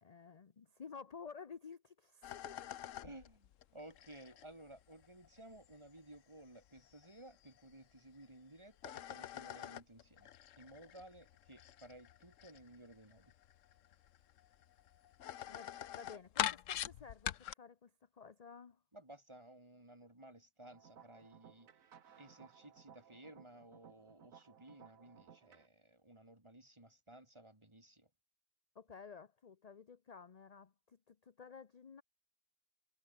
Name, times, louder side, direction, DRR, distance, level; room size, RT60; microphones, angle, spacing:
voice 1, 0.0-2.7 15.5-18.8 28.7-32.0, left 6 dB, 35° left, 0.7 m, -53 dB
sound 1, 2.2-8.2 8.6-17.5, left 11 dB, 65° left, 1.1 m, -45 dB
voice 2, 3.0-10.3 10.6-13.3 18.9-21.7 22.2-28.1, right 1 dB, 20° right, 2.9 m, -57 dB
sound 2, 20.6-25.7, right 8 dB, 75° right, 1.6 m, -61 dB
omnidirectional pair, 1.5 m